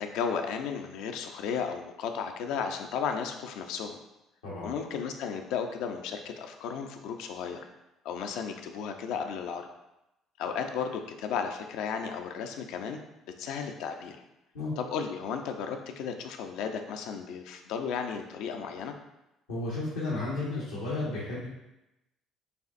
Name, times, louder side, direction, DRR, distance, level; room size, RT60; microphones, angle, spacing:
voice 1, 0.0-4.0 4.6-7.7 8.0-9.6 10.4-13.0 13.4-14.2 14.8-18.9, left 6 dB, 75° left, 5 dB, 0.4 m, -34 dB
voice 2, 19.5-21.5, left 2 dB, 90° left, -8 dB, 1.0 m, -33 dB
6.7 x 2.4 x 2.5 m, 0.92 s
hypercardioid pair, 60°, 0 cm